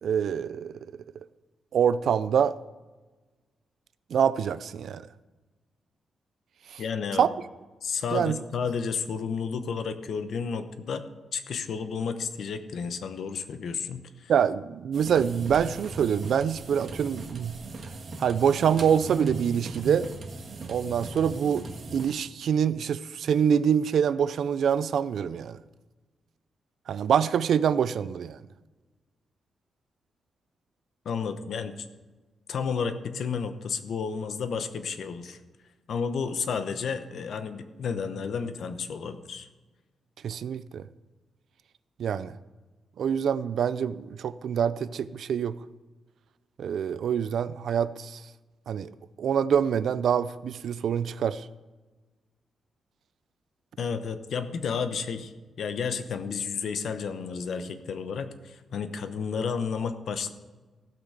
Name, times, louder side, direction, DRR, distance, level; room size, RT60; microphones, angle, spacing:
voice 1, 0.0-0.7 1.7-2.6 4.1-5.0 6.7-6.8 7.2-7.3 8.1-8.4 14.3-17.5 18.2-20.1 20.7-21.6 21.9-25.6 26.9-28.4 40.2-40.8 42.0-42.3 43.0-45.6 46.6-48.2 48.7-48.9 49.2-51.5, right 8 dB, 65° right, 0.4 m, -25 dB
voice 2, 6.8-7.3 7.8-11.0 11.3-14.3 31.0-31.9 32.5-35.4 35.9-39.5 53.8-55.3 55.6-60.3, left 6 dB, 60° left, 0.9 m, -31 dB
sound 1, 14.9-22.1, right 3 dB, 45° right, 1.5 m, -40 dB
15.5 x 6.0 x 6.5 m
wide cardioid pair, 165°, 0 cm